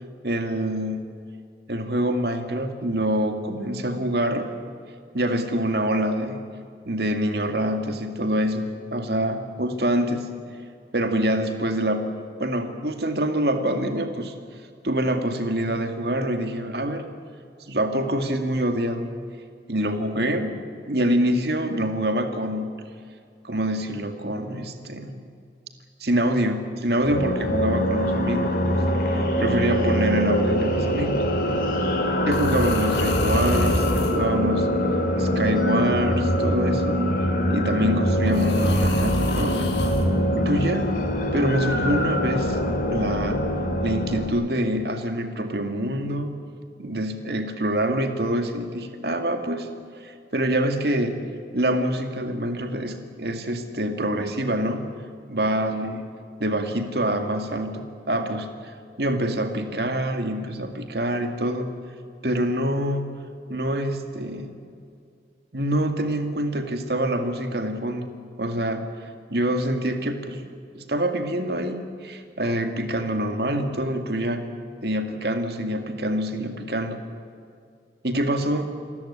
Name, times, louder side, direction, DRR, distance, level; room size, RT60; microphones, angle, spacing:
voice 1, 0.2-1.0 1.7-4.5 5.1-6.4 6.9-10.3 10.9-12.1 12.4-14.3 14.8-17.0 17.7-19.2 19.7-20.6 20.8-22.7 23.4-25.2 26.0-31.2 32.3-34.7 35.2-37.0 37.5-39.7 40.4-41.1 41.3-42.6 42.9-43.5 43.8-46.3 46.8-49.7 50.0-51.2 51.5-54.8 55.3-56.0 56.4-61.7 62.2-63.1 63.5-64.5 65.5-68.1 68.4-70.4 70.7-74.5 74.8-77.0 78.0-78.7, right 1 dB, 65° right, 6 dB, 2.2 m, -25 dB
sound 1, 27.0-44.3, equal, 50° left, 2.9 m, -23 dB
sound 2, 30.3-30.6 32.3-34.2 35.6-36.7 38.3-40.1 41.5-42.7, left 1 dB, 80° left, 2.9 m, -29 dB
28.0 x 13.5 x 9.9 m, 2.3 s
head